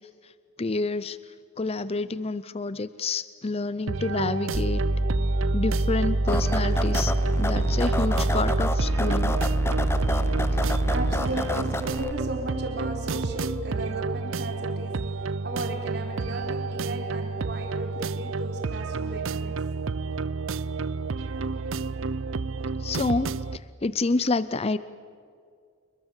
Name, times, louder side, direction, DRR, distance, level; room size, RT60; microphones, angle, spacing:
voice 1, 0.6-1.2 1.6-4.8 5.5-7.1 7.4-9.3 22.8-24.8, left 3 dB, 30° left, 15 dB, 0.5 m, -28 dB
sound 1, 3.9-23.6, right 4 dB, 65° right, 0.6 m, -30 dB
sound 2, 4.5-11.3, right 1 dB, 15° right, 0.6 m, -25 dB
sound 3, 6.3-12.1, left 1 dB, 10° left, 0.9 m, -31 dB
voice 2, 10.5-14.9 15.4-19.5, right 1 dB, 50° right, 2 dB, 4.5 m, -36 dB
29.0 x 22.0 x 7.3 m, 2.2 s
head